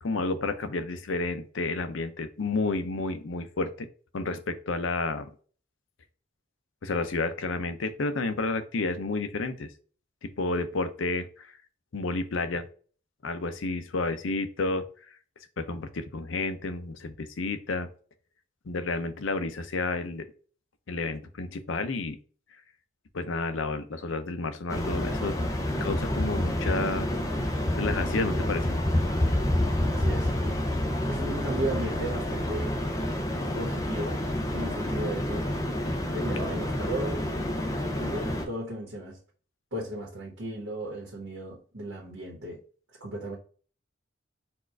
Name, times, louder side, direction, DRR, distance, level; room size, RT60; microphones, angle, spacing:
voice 1, 0.0-3.9 4.1-5.3 6.8-9.7 10.2-11.5 11.9-12.6 13.2-14.8 15.6-17.9 18.7-20.3 20.9-22.2 23.1-25.3 25.8-27.1 27.8-28.8, left 3 dB, 75° left, 9 dB, 0.6 m, -30 dB
sound 1, 24.7-38.5, left 1 dB, 15° left, 0.5 m, -28 dB
voice 2, 29.9-30.3 31.1-32.8 33.5-34.2 34.5-35.5 36.1-37.2 37.8-39.2 39.7-42.6 43.0-43.4, right 1 dB, 80° right, -4 dB, 1.4 m, -35 dB
4.3 x 2.5 x 4.5 m, 0.41 s
head